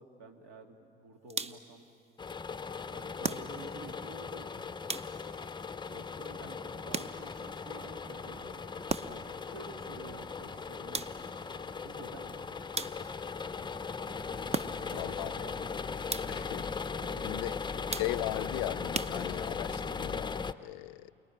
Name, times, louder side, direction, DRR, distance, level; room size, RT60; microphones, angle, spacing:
voice 1, 0.0-1.8 2.9-5.0 5.9-8.5 9.1-11.2 11.8-12.5 14.6-15.7 17.0-17.4, right 3 dB, 60° right, 2.7 m, -50 dB
sound 1, 1.3-1.8 3.2-3.9 4.9-5.5 6.9-7.5 8.9-9.4 10.9-11.5 12.7-13.3 14.5-15.1 16.1-16.6 17.9-18.4 18.9-19.7, right 4 dB, 20° right, 0.9 m, -38 dB
sound 2, 2.2-20.5, left 5 dB, 15° left, 0.7 m, -38 dB
Gas Station Ambience, 7.6-16.1, right 4 dB, 40° right, 1.7 m, -58 dB
voice 2, 14.8-15.3 16.3-16.6 17.2-17.5 18.0-21.1, left 19 dB, 65° left, 0.6 m, -38 dB
28.0 x 19.5 x 10.0 m
figure-of-eight pair, 55°, 29 cm